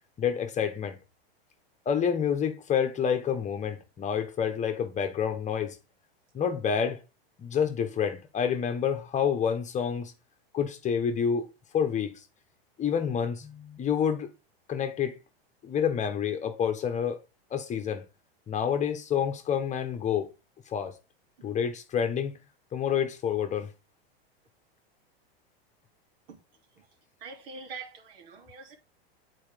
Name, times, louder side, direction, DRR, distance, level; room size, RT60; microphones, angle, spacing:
voice 1, 0.2-1.0 1.8-5.8 6.3-7.0 7.4-10.1 10.5-11.5 11.7-12.2 12.8-14.3 14.7-15.2 15.6-17.2 17.5-18.0 18.5-20.3 20.7-20.9 21.4-22.3 22.7-23.7, left 7 dB, 25° left, 1.2 m, -28 dB
voice 2, 27.2-28.8, right 4 dB, 70° right, 2.9 m, -44 dB
8.6 x 4.6 x 5.0 m
hypercardioid pair, 120°, 30 cm